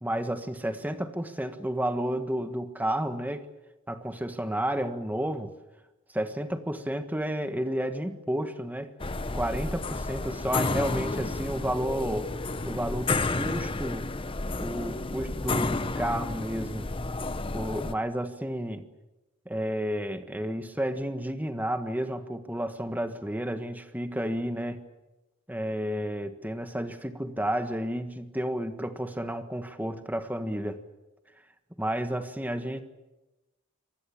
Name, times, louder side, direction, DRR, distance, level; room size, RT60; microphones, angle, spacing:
voice 1, 0.0-3.5 3.9-5.5 6.1-8.9 9.3-12.3 12.6-14.1 14.6-16.9 17.5-18.9 19.4-24.9 25.5-30.8 31.8-32.8, right 1 dB, 10° right, 8 dB, 1.5 m, -31 dB
sound 1, 9.0-17.9, left 3 dB, 25° left, 0.7 m, -31 dB
25.0 x 19.0 x 8.7 m, 1.0 s
head